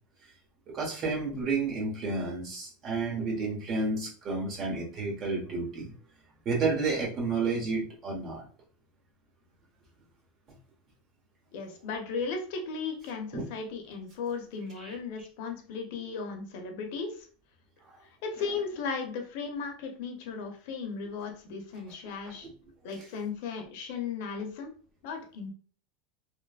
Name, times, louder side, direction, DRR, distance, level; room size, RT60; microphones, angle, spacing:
voice 1, 0.7-5.9 6.4-8.4 13.3-13.4 14.8-15.0 17.8-18.0, right 3 dB, 35° right, -2 dB, 1.1 m, -31 dB
voice 2, 11.5-17.3 18.2-22.5 22.8-24.7 25.0-25.5, left 5 dB, 65° left, 3 dB, 0.7 m, -36 dB
3.1 x 2.1 x 2.3 m, 0.42 s
supercardioid pair, 130°, 0 cm